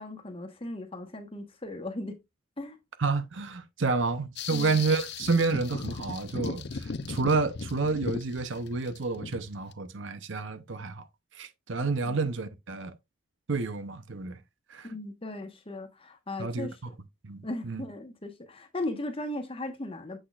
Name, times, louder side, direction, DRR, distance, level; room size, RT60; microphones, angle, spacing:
voice 1, 0.0-2.1 2.6-2.8 4.5-4.8 14.8-16.9 17.4-20.2, left 1 dB, 25° left, 1.2 m, -37 dB
voice 2, 3.0-11.1 11.3-12.9 13.5-14.4 14.7-14.9 16.4-16.9 17.2-17.8, right 4 dB, 60° right, 0.7 m, -30 dB
sound 1, 4.4-9.7, left 4 dB, 55° left, 0.5 m, -37 dB
7.8 x 6.2 x 2.4 m
head